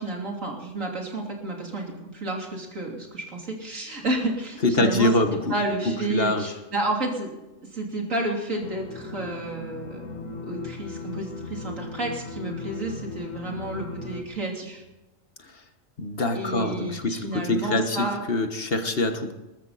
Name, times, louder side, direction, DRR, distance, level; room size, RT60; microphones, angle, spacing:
voice 1, 0.0-5.1 5.5-7.3 7.7-10.1 10.4-14.8 16.3-18.2, right 2 dB, 80° right, 0 dB, 3.6 m, -30 dB
voice 2, 4.6-5.4 6.1-6.5 16.0-19.3, left 2 dB, 50° left, 6 dB, 1.6 m, -24 dB
sound 1, 8.6-14.2, left 4 dB, 85° left, 1.8 m, -37 dB
21.0 x 13.5 x 4.2 m, 1.0 s
omnidirectional pair, 1.3 m